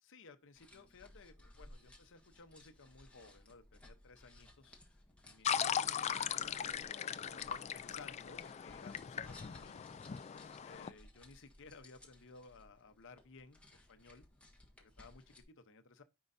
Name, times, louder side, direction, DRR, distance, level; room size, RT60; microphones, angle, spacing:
voice 1, 0.0-4.8 5.2-10.0 10.6-14.2 14.8-16.0, left 4 dB, 60° left, 0.8 m, -58 dB
sound 1, 0.6-15.4, left 1 dB, 5° left, 1.3 m, -61 dB
sound 2, 5.4-10.9, left 8 dB, 30° left, 0.3 m, -39 dB
9.5 x 4.7 x 2.6 m
head